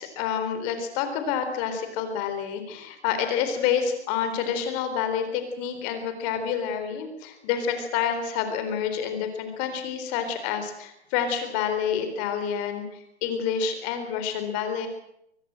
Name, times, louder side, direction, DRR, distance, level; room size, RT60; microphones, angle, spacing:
voice 1, 0.0-14.9, left 7 dB, 25° left, 8 dB, 4.0 m, -28 dB
23.0 x 19.0 x 7.8 m, 0.76 s
hypercardioid pair, 155°, 33 cm